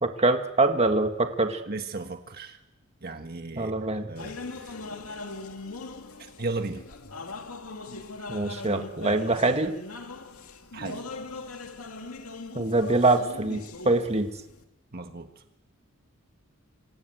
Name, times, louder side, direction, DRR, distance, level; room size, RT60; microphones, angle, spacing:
voice 1, 0.0-1.6 3.6-4.1 8.3-9.7 12.6-14.3, right 2 dB, 30° right, 6 dB, 1.8 m, -24 dB
voice 2, 1.7-2.6 3.0-3.7 4.1-4.8 6.2-6.8 10.7-11.0 14.9-15.3, right 3 dB, 45° right, 6 dB, 1.6 m, -35 dB
sound 1, 4.2-14.6, left 3 dB, 80° left, 2.3 m, -40 dB
27.5 x 26.0 x 8.0 m, 0.92 s
head